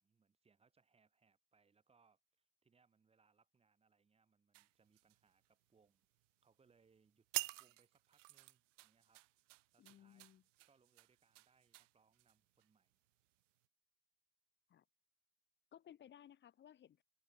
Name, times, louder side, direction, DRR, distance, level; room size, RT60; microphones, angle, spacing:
voice 1, 0.0-6.1 6.4-10.3 10.6-13.0, right 5 dB, 15° right, 3.3 m, -76 dB
sound 1, 4.5-5.8 6.1-6.5 6.9-7.0 7.3-12.7 13.2-13.4, right 19 dB, 90° right, 0.7 m, -49 dB
voice 2, 9.8-10.4 14.7-14.8 15.7-17.0, left 10 dB, 30° left, 2.1 m, -60 dB
open air
supercardioid pair, 130°, 36 cm